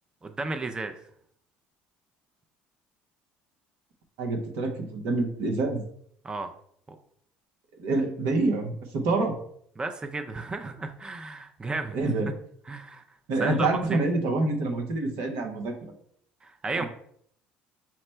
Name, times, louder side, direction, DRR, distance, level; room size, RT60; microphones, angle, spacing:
voice 1, 0.2-0.9 6.2-6.5 9.8-12.1 12.7-13.0 13.4-14.0 16.4-16.9, right 3 dB, 20° right, 7 dB, 0.5 m, -33 dB
voice 2, 4.2-5.8 7.8-9.3 11.9-12.3 13.3-15.7 16.7-16.9, right 2 dB, 75° right, 4 dB, 0.9 m, -27 dB
5.7 x 2.1 x 4.4 m, 0.65 s
supercardioid pair, 75°, 4 cm